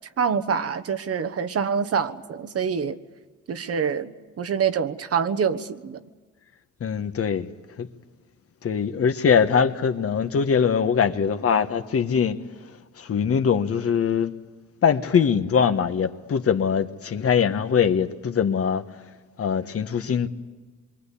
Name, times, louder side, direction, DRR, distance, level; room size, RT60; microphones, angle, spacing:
voice 1, 0.2-3.0 3.5-6.1, right 6 dB, 50° right, 1.3 m, -26 dB
voice 2, 6.8-7.5 7.8-7.9 8.6-12.4 13.0-14.3 14.8-18.8 19.4-20.3, left 7 dB, 50° left, 1.4 m, -22 dB
26.0 x 23.5 x 8.5 m
cardioid pair, 90°, 30 cm